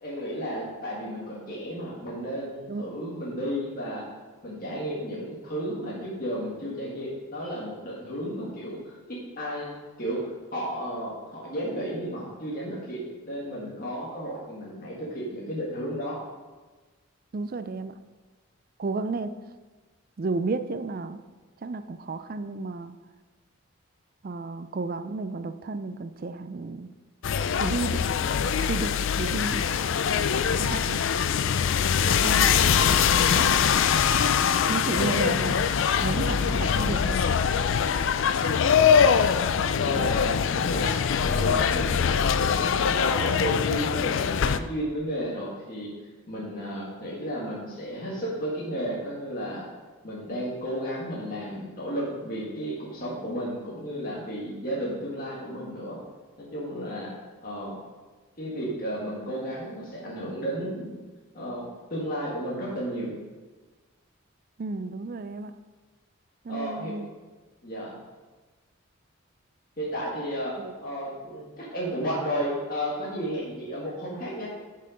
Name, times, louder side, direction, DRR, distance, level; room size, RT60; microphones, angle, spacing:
voice 1, 0.0-4.0 4.4-16.2 32.0-32.7 34.9-35.2 39.7-40.9 41.3-42.7 42.9-45.9 46.3-49.7 50.0-56.0 56.4-57.1 57.4-57.7 58.4-60.9 61.3-63.1 66.5-66.9 67.6-67.9 69.8-70.6 70.8-74.5, equal, 40° left, -6 dB, 1.9 m, -33 dB
voice 2, 17.3-17.9 18.8-19.3 20.2-21.2 21.6-22.9 24.2-26.9 27.6-28.0 28.7-29.6 30.6-31.0 32.2-33.5 34.7-35.6 36.0-37.2 64.6-65.5 66.5-67.1 70.6-70.7, right 3 dB, 40° right, 11 dB, 0.4 m, -32 dB
sound 1, 27.2-44.6, left 7 dB, 60° left, 0.4 m, -23 dB
9.5 x 5.6 x 5.1 m, 1.3 s
head